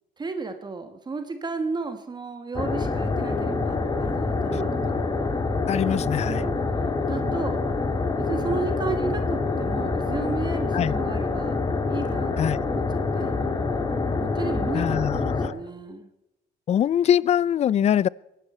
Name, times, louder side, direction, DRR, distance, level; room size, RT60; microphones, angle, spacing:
voice 1, 0.2-4.9 6.2-6.6 7.0-7.7 8.2-11.6 11.9-12.8 13.1-13.3 14.2-16.1, right 4 dB, 25° right, 1.4 m, -33 dB
sound 1, 2.5-15.5, left 3 dB, 25° left, 2.0 m, -26 dB
voice 2, 5.7-6.4 10.7-10.9 12.4-12.6 14.7-15.6 16.7-18.1, left 10 dB, 40° left, 0.4 m, -23 dB
22.5 x 12.0 x 4.3 m
cardioid pair, 110°, 17 cm